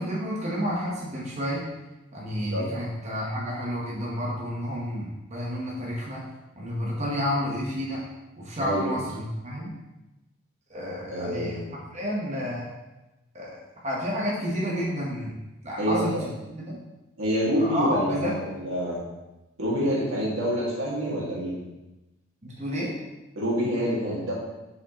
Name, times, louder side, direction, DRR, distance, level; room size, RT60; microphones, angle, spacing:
voice 1, 0.0-1.6 2.1-6.2 6.6-8.0 8.4-9.7 10.7-11.5 11.9-12.7 13.3-13.5 13.8-15.3 15.6-16.1 16.5-16.8 17.6-18.3 22.4-22.9, equal, 35° right, -5 dB, 1.1 m, -30 dB
voice 2, 2.3-2.6 8.6-9.0 11.1-11.7 15.8-16.2 17.2-19.0 19.6-21.6 23.4-24.3, equal, 85° right, -5 dB, 2.0 m, -27 dB
6.3 x 5.0 x 3.0 m, 1.0 s
head